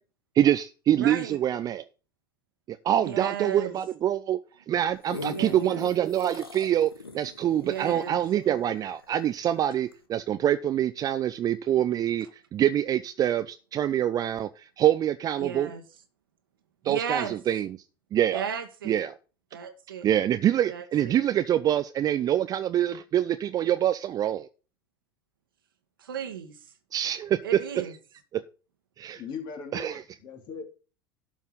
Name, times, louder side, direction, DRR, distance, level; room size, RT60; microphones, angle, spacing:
voice 1, 0.4-1.8 2.7-4.4 4.7-15.7 16.8-17.8 18.1-18.4 18.8-19.2 20.0-24.5 26.9-27.4 28.3-28.4 29.0-29.2 29.7-30.0, right 11 dB, 30° right, 0.5 m, -25 dB
voice 2, 1.0-1.4 3.0-3.7 5.3-5.9 7.6-8.2 15.4-15.8 16.8-17.3 18.3-19.0 19.5-20.1 20.7-21.2 26.0-26.5 27.4-27.9, right 8 dB, 70° right, 1.7 m, -34 dB
sound 1, 4.7-9.4 9.9-10.0, left 4 dB, 85° left, 1.2 m, -41 dB
voice 3, 29.1-30.7, left 6 dB, 40° left, 2.8 m, -39 dB
12.0 x 5.5 x 5.5 m
figure-of-eight pair, 75°, 12 cm